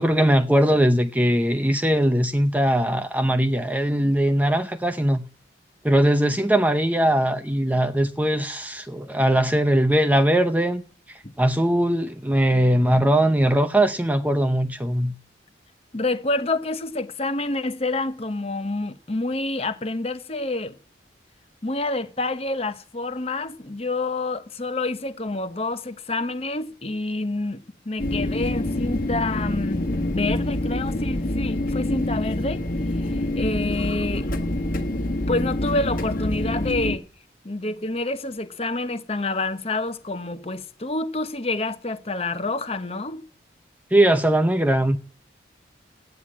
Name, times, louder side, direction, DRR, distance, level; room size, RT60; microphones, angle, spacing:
voice 1, 0.0-5.3 5.8-10.8 11.1-15.1 43.9-45.0, right 1 dB, 10° right, 0.6 m, -20 dB
voice 2, 15.9-20.8 21.6-32.6 33.1-34.3 35.3-37.0 37.4-43.2, left 2 dB, 30° left, 0.9 m, -28 dB
sound 1, 28.0-37.0, left 1 dB, 45° left, 1.4 m, -26 dB
14.0 x 9.3 x 8.6 m
head